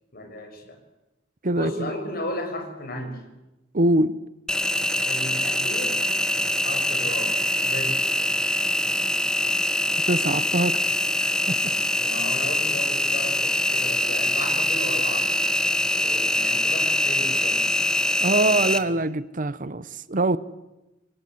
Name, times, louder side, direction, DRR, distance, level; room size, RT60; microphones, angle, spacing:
voice 1, 0.1-0.8 1.5-3.2 5.0-6.0 6.6-8.0 12.0-15.3 15.9-17.7, left 1 dB, 55° left, 6.7 m, -34 dB
voice 2, 3.7-4.2 10.1-10.8 11.2-11.8 18.2-20.4, right 2 dB, 45° right, 0.9 m, -23 dB
Engine, 4.5-18.8, left 1 dB, 5° left, 1.5 m, -24 dB
28.0 x 24.5 x 8.1 m
head